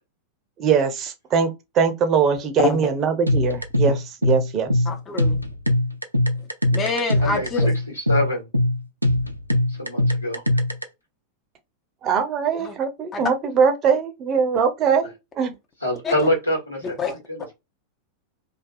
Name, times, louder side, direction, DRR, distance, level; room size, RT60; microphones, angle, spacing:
voice 1, 0.6-1.5 1.7-4.7 12.0-15.5, right 6 dB, 30° right, 0.6 m, -21 dB
sound 1, 3.3-10.8, left 1 dB, 90° right, 0.3 m, -21 dB
voice 2, 4.9-5.4 6.7-7.7 12.6-12.8 13.1-13.3 16.0-16.1 17.0-17.1, left 4 dB, 25° left, 0.6 m, -26 dB
voice 3, 7.2-7.6 7.9-8.4 9.7-10.4 15.8-17.5, left 1 dB, 85° left, 1.3 m, -25 dB
2.4 x 2.2 x 2.5 m
figure-of-eight pair, 90°, 0 cm